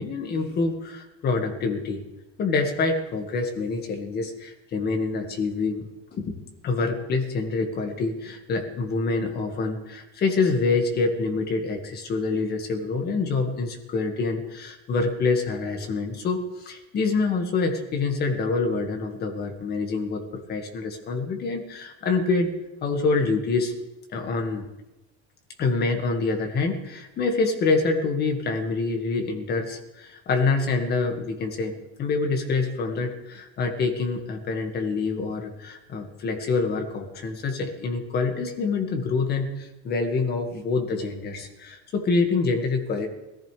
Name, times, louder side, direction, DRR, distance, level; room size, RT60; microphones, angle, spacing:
voice 1, 0.0-2.0 2.4-22.5 22.8-23.7 24.1-24.7 25.6-31.7 32.0-43.1, left 4 dB, 30° left, 4 dB, 1.9 m, -26 dB
20.5 x 14.5 x 3.4 m, 1.0 s
cardioid pair, 160°, 33 cm